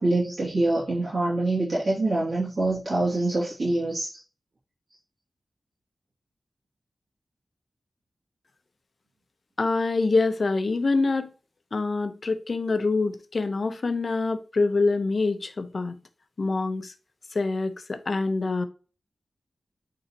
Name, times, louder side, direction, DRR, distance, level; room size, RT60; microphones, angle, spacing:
voice 1, 0.0-4.1, right 2 dB, 55° right, 2.7 m, -25 dB
voice 2, 9.6-11.3 11.7-16.0 16.4-16.9 17.3-18.6, left 3 dB, 55° left, 0.9 m, -25 dB
8.9 x 3.9 x 3.0 m
wide cardioid pair, 80°, 0 cm